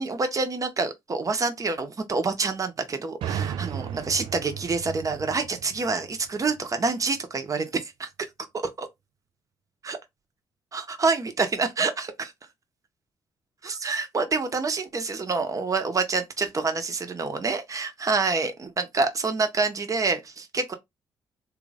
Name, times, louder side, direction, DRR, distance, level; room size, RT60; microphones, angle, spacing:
voice 1, 0.0-8.1 8.8-8.9 9.8-10.0 10.7-12.3 13.6-20.7, right 4 dB, 40° right, 1.0 m, -27 dB
sound 1, 3.2-6.9, right 9 dB, 75° right, 0.4 m, -35 dB
3.2 x 2.5 x 3.3 m
cardioid pair, 70°, 9 cm